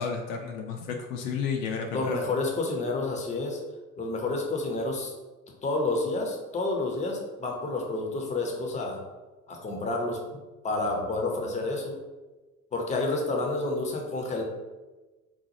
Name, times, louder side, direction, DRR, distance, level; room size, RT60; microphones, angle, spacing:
voice 1, 0.0-2.3, left 6 dB, 60° left, 2 dB, 0.5 m, -32 dB
voice 2, 1.9-3.6 4.0-5.1 5.6-9.0 9.5-10.2 10.6-11.9 12.7-14.4, left 2 dB, 15° left, 1 dB, 0.6 m, -29 dB
4.1 x 2.2 x 2.8 m, 1.2 s
figure-of-eight pair, 55°, 42 cm